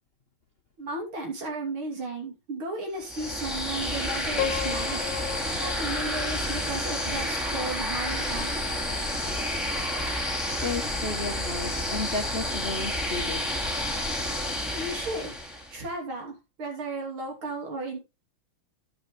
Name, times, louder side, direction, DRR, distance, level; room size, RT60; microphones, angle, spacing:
voice 1, 0.8-5.1 5.6-8.5 14.8-15.3 15.7-18.0, right 2 dB, 80° right, 1 dB, 3.7 m, -34 dB
sound 1, 3.0-15.8, left 1 dB, ahead, 2.1 m, -30 dB
Piano, 4.4-7.4, left 11 dB, 90° left, 1.6 m, -35 dB
voice 2, 10.6-13.4, left 3 dB, 45° left, 4 dB, 0.8 m, -33 dB
10.5 x 9.7 x 3.2 m, 0.24 s
omnidirectional pair, 2.3 m